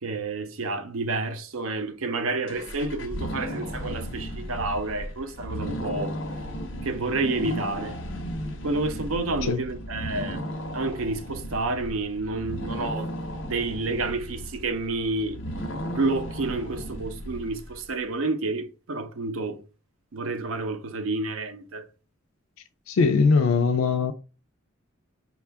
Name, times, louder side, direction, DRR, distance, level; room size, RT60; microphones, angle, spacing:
voice 1, 0.0-6.2 6.8-8.0 8.6-10.5 10.7-13.1 13.4-15.4 15.9-19.6 20.1-21.9, right 3 dB, 90° right, 0.6 m, -29 dB
sound 1, 2.5-17.9, equal, 65° left, 0.8 m, -35 dB
voice 2, 22.9-24.1, left 4 dB, 85° left, 0.4 m, -21 dB
4.8 x 2.3 x 3.3 m
head